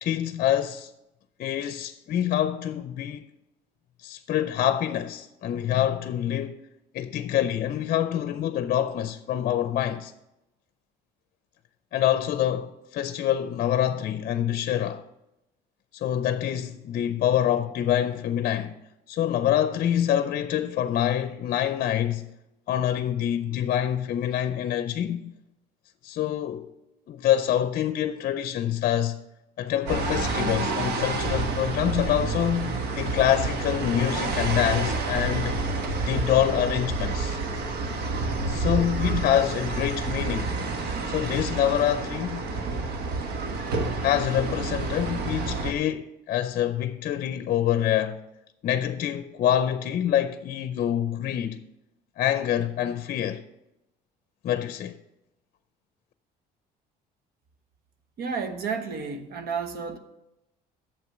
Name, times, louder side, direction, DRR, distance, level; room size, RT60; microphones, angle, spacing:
voice 1, 0.0-0.9 1.4-3.3 4.0-6.6 6.9-10.1 11.9-15.0 15.9-18.7 19.1-22.3 22.7-25.3 26.0-26.7 27.1-29.2 29.6-35.6 36.0-37.4 38.5-40.6 41.1-42.4 44.0-48.2 48.6-51.6 52.2-53.4 54.4-55.0, left 10 dB, 55° left, 0.5 m, -26 dB
sound 1, 29.9-45.7, right 3 dB, 85° right, 1.2 m, -29 dB
voice 2, 58.2-60.0, right 5 dB, 65° right, 1.1 m, -31 dB
8.2 x 7.2 x 6.1 m
cardioid pair, 110°, 17 cm